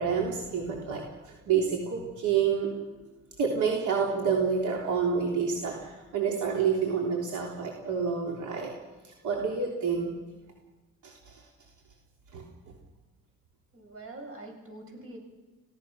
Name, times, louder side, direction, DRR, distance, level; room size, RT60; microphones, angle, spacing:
voice 1, 0.0-3.0 3.4-8.7 9.0-10.1 11.0-11.5 12.3-12.4, right 6 dB, 75° right, 0 dB, 3.5 m, -28 dB
voice 2, 13.7-15.2, right 2 dB, 45° right, 2 dB, 7.7 m, -44 dB
28.0 x 17.5 x 6.5 m, 1.2 s
cardioid pair, 90°, 30 cm